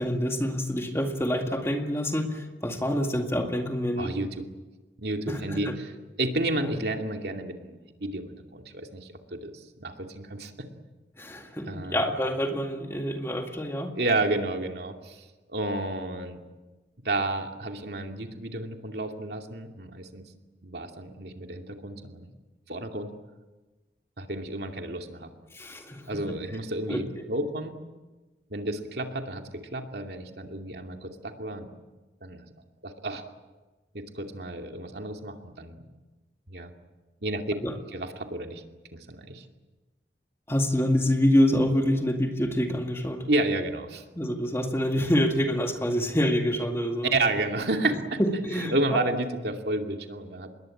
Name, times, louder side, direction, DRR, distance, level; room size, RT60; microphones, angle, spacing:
voice 1, 0.0-4.1 5.3-5.8 11.2-13.9 25.5-26.4 26.9-27.0 37.6-37.8 40.5-43.3 44.1-47.1 48.2-49.2, equal, 15° left, 4 dB, 2.1 m, -26 dB
voice 2, 5.0-5.7 6.2-10.7 11.7-12.0 14.0-16.4 17.0-20.2 20.6-22.3 22.7-23.1 24.2-25.3 26.1-27.8 28.5-31.7 32.2-32.4 32.8-33.2 33.9-35.8 36.5-36.7 37.2-37.4 37.9-38.6 38.9-39.4 43.3-44.0 47.1-48.2 48.6-50.5, right 2 dB, 65° right, 4 dB, 2.5 m, -31 dB
27.0 x 21.5 x 8.6 m, 1.2 s
head